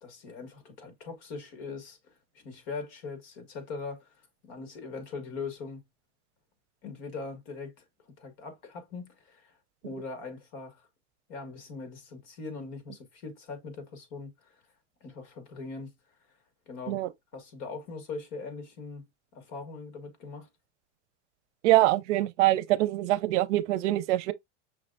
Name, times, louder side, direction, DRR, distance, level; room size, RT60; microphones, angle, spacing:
voice 1, 0.0-4.2 4.4-5.8 6.8-7.8 8.2-9.6 9.8-10.8 11.3-14.6 15.0-15.9 16.7-17.0 17.3-19.0 19.3-20.5, left 4 dB, 50° left, 1.7 m, -41 dB
voice 2, 21.6-24.3, right 16 dB, 80° right, 0.6 m, -24 dB
5.8 x 3.2 x 2.5 m
supercardioid pair, 175°, 35 cm